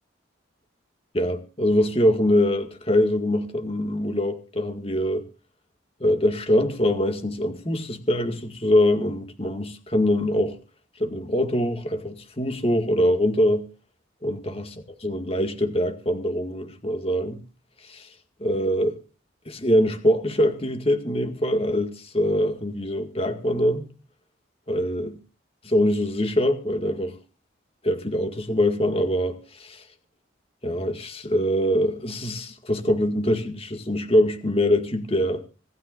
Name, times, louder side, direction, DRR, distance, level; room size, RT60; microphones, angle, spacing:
voice 1, 1.1-5.3 6.0-10.6 11.0-13.7 14.2-14.7 15.0-17.4 17.8-18.1 18.4-18.9 19.5-23.9 24.7-25.2 25.6-27.2 27.8-29.8 30.6-35.4, left 1 dB, 30° left, 2.0 m, -23 dB
26.0 x 13.5 x 2.6 m
head